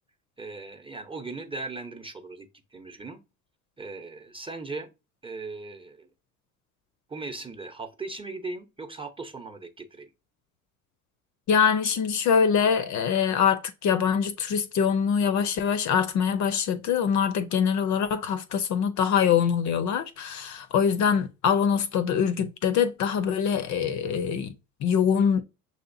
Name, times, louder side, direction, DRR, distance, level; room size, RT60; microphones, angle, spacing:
voice 1, 0.4-3.2 3.8-4.9 5.2-6.1 7.1-10.1, right 3 dB, 15° right, 0.8 m, -38 dB
voice 2, 11.5-24.5 24.8-25.4, left 7 dB, 45° left, 0.6 m, -24 dB
6.3 x 2.8 x 2.6 m
hypercardioid pair, 70°, 39 cm